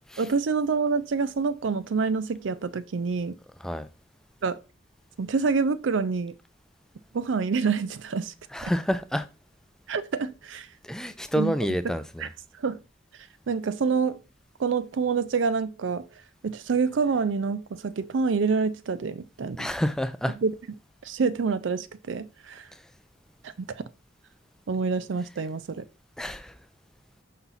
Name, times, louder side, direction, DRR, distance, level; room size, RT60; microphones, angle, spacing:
voice 1, 0.2-3.4 4.4-4.6 5.2-6.4 7.1-8.3 8.6-8.7 9.9-10.7 11.4-11.5 11.8-11.9 12.2-12.3 12.6-12.8 13.5-14.2 14.6-16.1 16.4-19.7 20.4-20.5 21.0-22.7 23.4-23.8 24.7-25.8, right 5 dB, 80° right, 0.5 m, -27 dB
voice 2, 8.5-9.3 10.8-12.3 19.6-20.4 22.7-22.8 26.2-26.6, equal, 5° left, 0.4 m, -29 dB
5.8 x 5.7 x 4.0 m
head